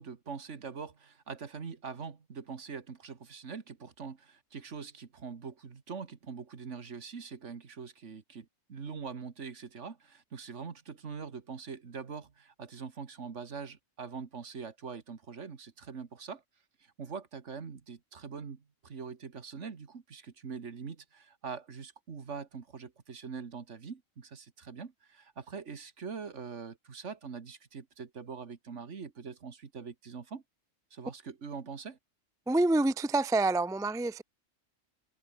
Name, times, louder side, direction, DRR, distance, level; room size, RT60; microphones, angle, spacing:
voice 1, 0.0-16.4 16.8-30.4 30.9-32.0, right 5 dB, 65° right, 1.9 m, -43 dB
voice 2, 32.5-34.2, right 2 dB, 5° right, 0.5 m, -27 dB
omnidirectional pair, 1.4 m